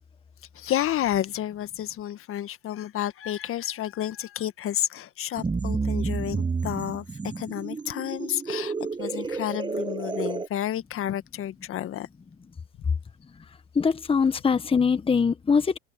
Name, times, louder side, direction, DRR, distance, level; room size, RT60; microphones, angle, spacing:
voice 1, 0.5-7.0 7.4-8.7 9.0-12.1, left 12 dB, 40° left, 1.7 m, -30 dB
sound 1, 5.4-10.5, right 4 dB, 15° right, 1.2 m, -30 dB
voice 2, 13.7-15.8, left 5 dB, 15° left, 1.5 m, -22 dB
hypercardioid pair, 100°, 35 cm